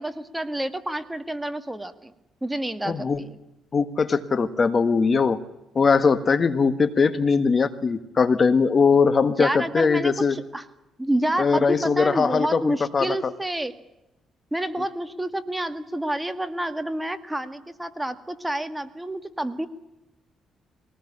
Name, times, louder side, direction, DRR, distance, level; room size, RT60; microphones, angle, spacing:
voice 1, 0.0-2.1 2.4-3.4 9.4-10.7 11.0-13.8 14.5-19.7, right 1 dB, 10° right, 10 dB, 2.1 m, -29 dB
voice 2, 2.9-3.2 3.7-5.4 5.7-10.3 11.4-13.3, left 5 dB, 40° left, 12 dB, 1.5 m, -21 dB
23.5 x 19.0 x 10.0 m, 0.91 s
cardioid pair, 90°, 0 cm